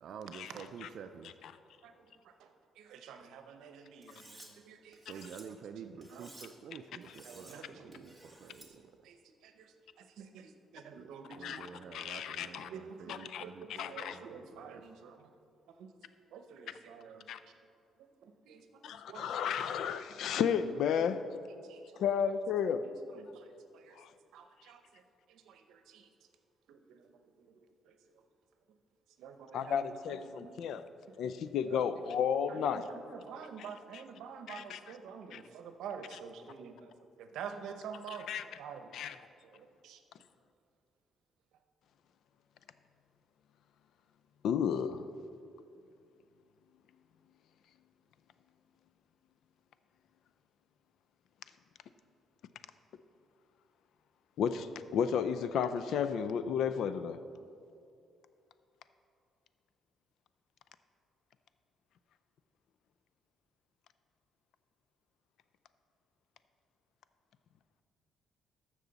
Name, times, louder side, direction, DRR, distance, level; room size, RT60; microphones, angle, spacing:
voice 1, 0.0-1.3 5.1-8.1 8.4-8.7 11.0-14.8, right 7 dB, 70° right, 8 dB, 0.4 m, -49 dB
voice 2, 2.8-5.3 5.8-6.3 7.2-8.0 8.8-9.2 9.4-9.7 10.0-11.7 12.7-15.3 15.8-15.9 16.3-17.3 18.2-19.3 21.7-22.0 22.8-23.4 23.7-24.0 24.3-25.0 25.3-26.1 26.7-27.1 27.4-27.5 27.9-28.0 29.2-30.0 30.2-30.5 31.6-31.8 32.5-36.9 37.2-38.3 38.6-38.9 39.5-40.0, right 6 dB, 85° right, 7 dB, 0.8 m, -48 dB
Cutlery silverware, 4.0-4.5 4.9-5.4 6.0-6.5 7.0-7.6 7.9-8.7, right 1 dB, 5° right, 1.7 m, -55 dB
voice 3, 11.3-12.7 13.1-13.4 13.7-14.2 17.3-17.4 18.8-21.3 22.0-22.9 24.0-24.1 29.5-30.8 31.2-32.9 33.6-34.0 34.5-34.8 35.3-35.4 36.1-36.2 38.1-38.4 38.9-39.2 44.4-45.1 54.4-57.2, left 7 dB, 75° left, 12 dB, 0.4 m, -33 dB
14.5 x 6.1 x 4.0 m, 2.5 s
cardioid pair, 90°, 0 cm